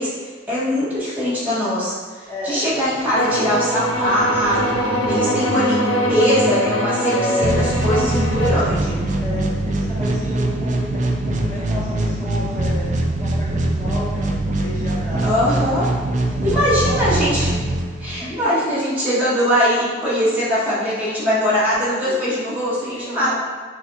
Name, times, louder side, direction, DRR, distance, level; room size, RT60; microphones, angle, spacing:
voice 1, 0.0-4.6 5.1-5.8 6.1-9.0 15.2-15.9 16.4-17.5 18.0-23.3, equal, 10° right, -10 dB, 1.2 m, -21 dB
voice 2, 2.3-2.8 4.8-6.1 7.1-7.7 9.2-12.9 13.2-15.7 16.3-17.3 18.2-18.8 22.9-23.3, left 1 dB, 15° left, -12 dB, 1.3 m, -31 dB
sound 1, 2.7-10.0, right 1 dB, 85° right, 0.7 m, -28 dB
sound 2, 3.1-8.7, equal, 75° left, 0.5 m, -24 dB
sound 3, 7.4-18.4, right 1 dB, 40° right, 0.4 m, -22 dB
6.3 x 2.6 x 2.3 m, 1.4 s
head